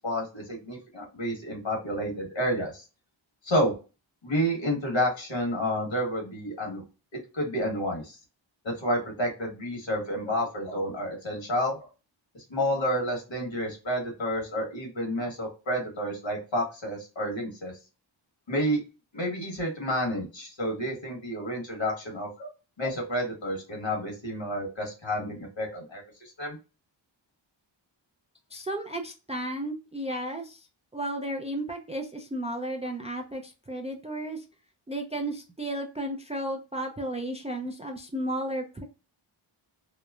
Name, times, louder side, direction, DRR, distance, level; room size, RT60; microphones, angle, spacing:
voice 1, 0.0-2.8 3.4-3.7 4.2-6.8 7.1-8.2 8.6-11.8 12.3-17.7 18.5-18.8 19.1-22.5 22.8-26.0 26.4-26.6, equal, 65° left, 1 dB, 1.3 m, -30 dB
voice 2, 28.5-30.7 30.9-34.4 34.9-38.8, right 1 dB, 15° right, 3 dB, 0.3 m, -33 dB
3.0 x 2.0 x 2.3 m, 0.32 s
wide cardioid pair, 65°, 48 cm